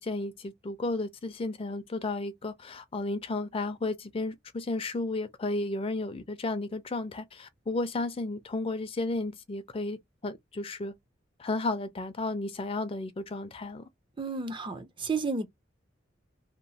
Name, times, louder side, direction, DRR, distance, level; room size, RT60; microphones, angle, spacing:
voice 1, 0.0-10.9 11.4-13.8, left 2 dB, 30° left, 0.4 m, -33 dB
voice 2, 14.2-15.5, right 4 dB, 25° right, 0.5 m, -32 dB
2.9 x 2.0 x 2.7 m
head